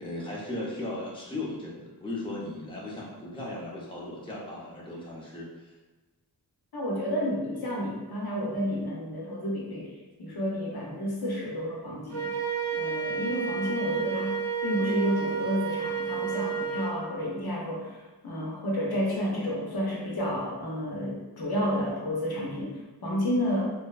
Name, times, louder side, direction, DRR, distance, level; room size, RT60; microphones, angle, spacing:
voice 1, 0.0-5.7, left 2 dB, 10° left, -5 dB, 0.6 m, -37 dB
voice 2, 6.7-9.9 10.2-12.3 12.8-23.7, equal, 60° left, -3 dB, 0.7 m, -31 dB
Wind instrument woodwind instrument, 12.1-17.0, right 6 dB, 80° right, 1.2 m, -31 dB
2.6 x 2.1 x 2.3 m, 1.2 s
cardioid pair, 40°, 41 cm